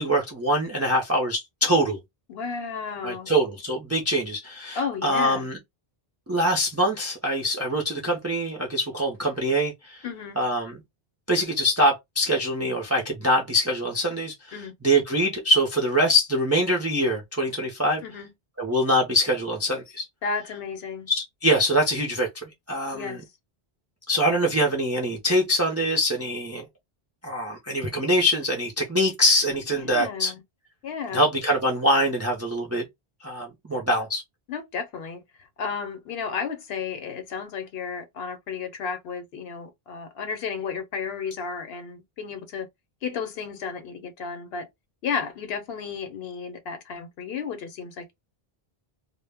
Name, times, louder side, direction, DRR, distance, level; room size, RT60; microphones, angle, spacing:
voice 1, 0.0-2.0 3.0-5.6 6.3-10.0 10.4-10.8 11.3-14.3 14.8-18.0 18.6-20.1 21.1-22.3 22.7-23.2 24.1-26.6 27.2-30.3 31.1-32.8 33.2-34.2, equal, 25° right, 0.3 m, -24 dB
voice 2, 2.3-3.3 4.7-5.5 10.0-10.5 14.5-14.7 18.0-18.3 20.2-21.1 22.9-23.2 29.7-30.4 30.8-31.3 34.5-42.7 43.0-44.7 45.0-48.1, left 6 dB, 75° left, 0.8 m, -33 dB
2.1 x 2.0 x 3.2 m
omnidirectional pair, 1.0 m